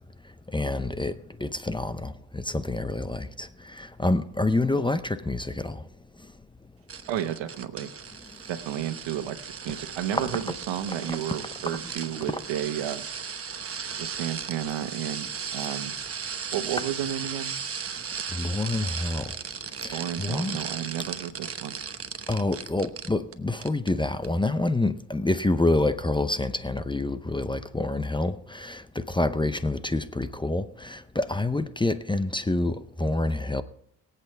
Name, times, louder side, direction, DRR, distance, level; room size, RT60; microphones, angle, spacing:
voice 1, 0.5-1.1 1.4-5.8 10.1-10.6 11.1-11.2 12.3-12.4 18.3-19.4 19.8-20.6 22.3-33.6, left 2 dB, 10° left, 0.7 m, -27 dB
sound 1, 6.9-23.3 23.6-23.9 24.2-24.3, right 6 dB, 30° right, 1.0 m, -36 dB
voice 2, 7.1-7.9 8.5-13.0 14.0-15.9 16.5-17.5 19.9-21.7, right 11 dB, 85° right, 1.4 m, -32 dB
22.5 x 8.4 x 3.4 m
cardioid pair, 90°, 44 cm